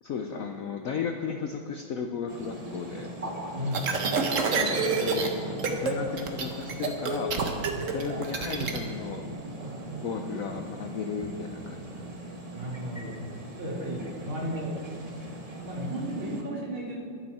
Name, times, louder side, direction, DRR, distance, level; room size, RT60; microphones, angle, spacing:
voice 1, 0.0-3.1 4.5-7.3 7.9-9.2 10.0-11.8, left 6 dB, 75° left, 4 dB, 0.8 m, -34 dB
sound 1, 2.3-16.4, right 2 dB, 25° right, 1.0 m, -39 dB
voice 2, 3.5-3.9 7.7-8.0 12.5-13.2 13.6-14.8 15.6-17.0, right 1 dB, 75° right, -4 dB, 3.2 m, -34 dB
sound 2, 3.7-5.3 5.6-5.9 6.2-8.8, right 5 dB, 50° right, 1.1 m, -27 dB
20.5 x 7.2 x 4.2 m, 2.5 s
omnidirectional pair, 2.3 m